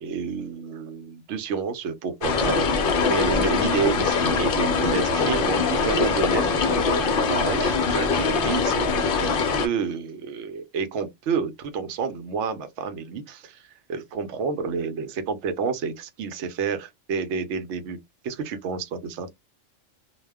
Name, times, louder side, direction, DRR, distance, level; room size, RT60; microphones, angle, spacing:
voice 1, 0.0-2.6 3.1-9.3 9.6-18.0 18.2-19.3, right 6 dB, 65° right, 0.8 m, -30 dB
sound 1, 2.2-9.7, left 4 dB, 60° left, 0.6 m, -22 dB
2.2 x 2.1 x 3.3 m
omnidirectional pair, 1.3 m